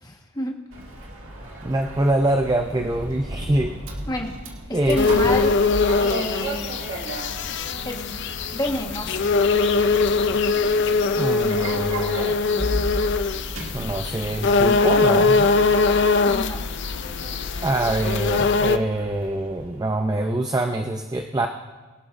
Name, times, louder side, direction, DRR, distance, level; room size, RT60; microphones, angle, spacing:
voice 1, 0.0-0.5 4.1-4.3 4.9-5.5 6.0-6.8 7.8-8.0 8.5-9.2 16.3-16.6, left 1 dB, 20° left, 1 dB, 1.4 m, -28 dB
Sliding door, 0.7-20.3, right 1 dB, 65° right, 2.0 m, -35 dB
voice 2, 1.6-3.8 4.7-5.0 11.2-12.4 13.3-13.4 13.7-15.5 17.6-21.5, right 1 dB, 15° right, 4 dB, 0.5 m, -24 dB
sound 1, 5.0-18.8, left 4 dB, 55° left, 0.5 m, -22 dB
22.5 x 12.0 x 2.6 m, 1.3 s
head